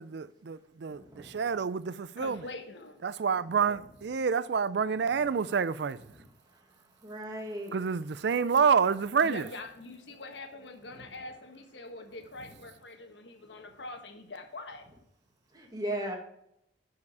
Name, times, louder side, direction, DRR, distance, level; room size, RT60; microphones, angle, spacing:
voice 1, 0.0-2.5 3.0-6.0 7.7-9.5, right 6 dB, 65° right, 0.4 m, -28 dB
voice 2, 0.9-1.4 7.0-7.8 15.5-16.2, right 1 dB, 20° right, 1.9 m, -36 dB
voice 3, 2.2-3.0 9.2-14.9, left 2 dB, 75° left, 1.3 m, -44 dB
9.6 x 4.8 x 4.8 m
head